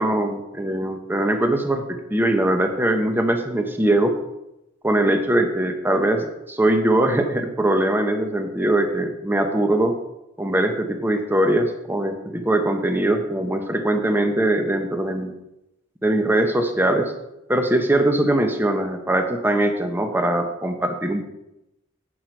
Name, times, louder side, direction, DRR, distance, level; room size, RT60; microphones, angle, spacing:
voice 1, 0.0-4.2 4.8-10.0 10.4-15.3 16.0-17.1 17.5-21.2, right 1 dB, 10° right, 5 dB, 0.9 m, -21 dB
10.0 x 8.3 x 4.6 m, 0.91 s
head